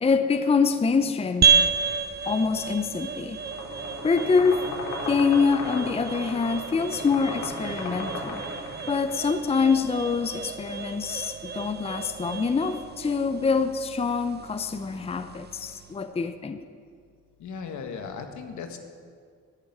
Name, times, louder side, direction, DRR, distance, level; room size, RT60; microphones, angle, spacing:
voice 1, 0.0-1.5 2.3-3.4 4.0-4.6 5.1-8.4 8.9-16.6, left 5 dB, 20° left, 10 dB, 0.6 m, -25 dB
sound 1, 1.4-16.0, right 6 dB, 35° right, 0.7 m, -31 dB
sound 2, 3.4-9.1, left 2 dB, 90° left, 3.5 m, -36 dB
voice 2, 17.4-18.8, left 5 dB, 70° left, 5 dB, 1.7 m, -36 dB
13.0 x 7.1 x 9.5 m, 2.1 s
cardioid pair, 90°, 30 cm